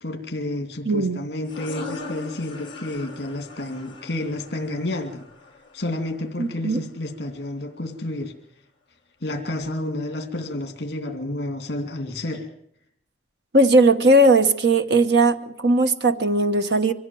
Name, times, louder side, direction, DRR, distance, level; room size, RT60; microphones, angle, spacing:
voice 1, 0.0-5.3 5.7-8.4 9.2-12.5, left 1 dB, 55° left, 5 dB, 2.6 m, -30 dB
voice 2, 0.9-1.2 6.4-6.8 13.5-16.9, right 2 dB, 60° right, 9 dB, 1.1 m, -18 dB
sound 1, 1.4-6.8, left 2 dB, 25° left, 4.0 m, -40 dB
24.0 x 15.5 x 7.7 m, 0.69 s
head